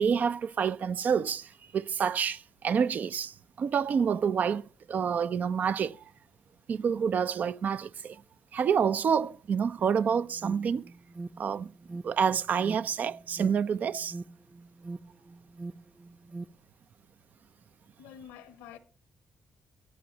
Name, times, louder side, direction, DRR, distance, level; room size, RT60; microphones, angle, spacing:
voice 1, 0.0-4.6 4.9-6.0 6.7-8.2 8.5-10.9 11.4-11.7 12.0-14.2, right 7 dB, 55° right, 0.5 m, -28 dB
Alarm, 9.8-16.5, right 3 dB, 20° right, 0.7 m, -43 dB
voice 2, 18.0-18.8, left 9 dB, 85° left, 1.0 m, -47 dB
22.5 x 7.7 x 3.0 m
hypercardioid pair, 45°, 3 cm